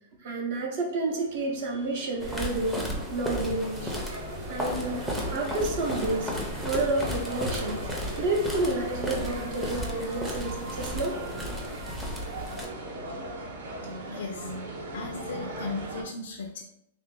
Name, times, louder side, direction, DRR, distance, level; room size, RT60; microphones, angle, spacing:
voice 1, 0.2-2.9 3.1-4.0 4.5-5.0 5.3-7.9 8.2-11.2, right 2 dB, 50° right, 1 dB, 0.6 m, -30 dB
sound 1, 0.9-16.0, right 1 dB, 85° right, 0.9 m, -39 dB
sound 2, 2.2-12.7, equal, 5° right, 0.5 m, -34 dB
sound 3, 4.2-10.7, equal, 20° right, 0.9 m, -52 dB
voice 2, 14.1-14.5 14.9-16.6, left 4 dB, 80° left, 4 dB, 0.4 m, -36 dB
3.2 x 2.5 x 3.6 m, 0.81 s
supercardioid pair, 165°, 0 cm